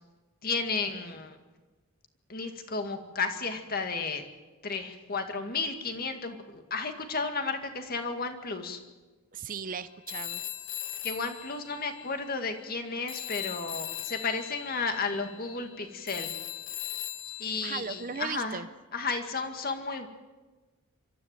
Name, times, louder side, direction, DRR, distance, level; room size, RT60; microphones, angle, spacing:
voice 1, 0.4-1.4 2.3-4.2 4.6-8.8 11.0-16.3 17.4-18.6 18.9-20.1, left 4 dB, 40° left, 6 dB, 2.1 m, -33 dB
voice 2, 9.3-10.4 17.6-18.7, right 6 dB, 40° right, 14 dB, 0.6 m, -37 dB
Telephone, 10.1-12.8 13.1-18.3, left 13 dB, 60° left, 1.4 m, -40 dB
25.0 x 13.5 x 9.0 m, 1.2 s
head